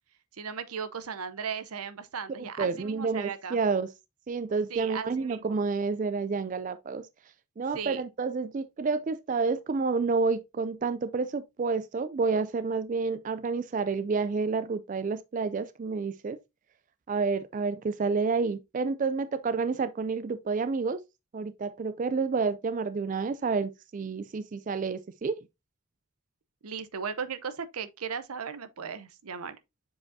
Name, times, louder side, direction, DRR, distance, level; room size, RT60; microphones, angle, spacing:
voice 1, 0.4-3.6 4.7-5.6 7.7-8.0 26.6-29.6, right 6 dB, 85° right, 0.7 m, -37 dB
voice 2, 2.4-3.9 4.3-7.1 7.6-16.4 17.1-21.0 21.3-25.4, right 4 dB, 35° right, 0.3 m, -29 dB
7.4 x 4.8 x 2.6 m
head